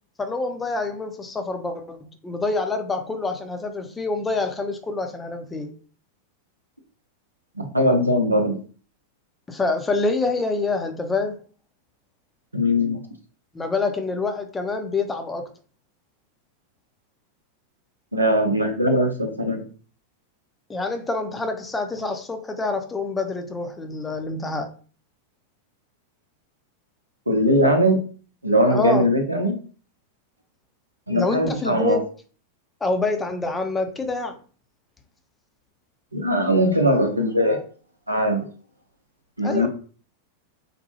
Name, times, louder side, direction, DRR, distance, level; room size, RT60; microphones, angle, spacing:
voice 1, 0.2-5.7 9.5-11.4 13.5-15.5 20.7-24.7 28.7-29.1 31.1-32.0 32.8-34.4 39.4-39.7, left 3 dB, 15° left, 0.6 m, -26 dB
voice 2, 7.6-8.6 12.5-13.0 18.1-19.6 27.3-28.0 28.4-29.6 31.1-32.0 36.1-37.6 38.1-38.4 39.4-39.7, equal, 85° right, 0.7 m, -20 dB
4.2 x 2.2 x 2.8 m
figure-of-eight pair, 90°, 0 cm